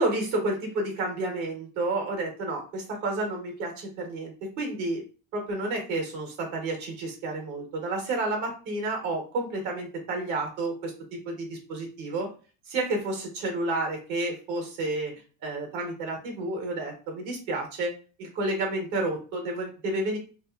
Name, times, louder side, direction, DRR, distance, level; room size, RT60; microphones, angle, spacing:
voice 1, 0.0-5.0 5.3-10.9 11.2-12.3 12.7-15.1 15.4-17.9 18.2-20.2, right 2 dB, 75° right, 2 dB, 1.2 m, -30 dB
2.8 x 2.2 x 2.3 m, 0.37 s
supercardioid pair, 110°, 33 cm